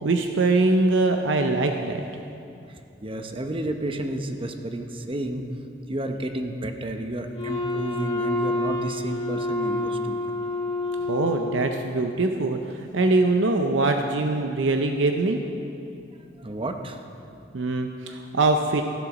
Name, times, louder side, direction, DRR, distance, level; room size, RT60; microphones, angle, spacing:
voice 1, 0.0-2.0 11.1-15.4 17.5-18.8, right 2 dB, 90° right, 5 dB, 0.6 m, -23 dB
voice 2, 3.0-5.5 5.9-10.2 16.4-17.0, right 1 dB, 30° right, 5 dB, 0.8 m, -31 dB
Wind instrument woodwind instrument, 7.3-12.1, left 2 dB, 30° left, 1.4 m, -28 dB
14.5 x 7.9 x 6.0 m, 2.7 s
head